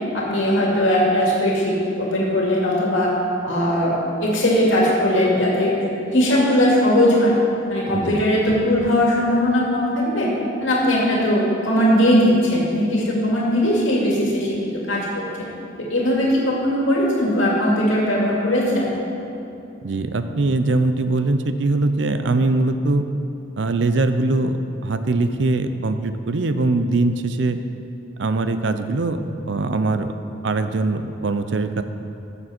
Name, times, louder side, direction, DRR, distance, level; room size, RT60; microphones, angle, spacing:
voice 1, 0.1-3.1 3.4-3.9 4.2-5.8 6.1-7.3 7.7-10.3 10.6-14.5 14.9-15.2 15.9-18.9, equal, 80° left, -4 dB, 2.4 m, -19 dB
voice 2, 7.9-8.2 19.8-23.0 23.6-24.6 24.8-27.6 28.2-29.2 29.5-30.1 30.4-31.8, right 2 dB, 65° right, 9 dB, 0.6 m, -21 dB
15.5 x 7.0 x 4.4 m, 2.7 s
head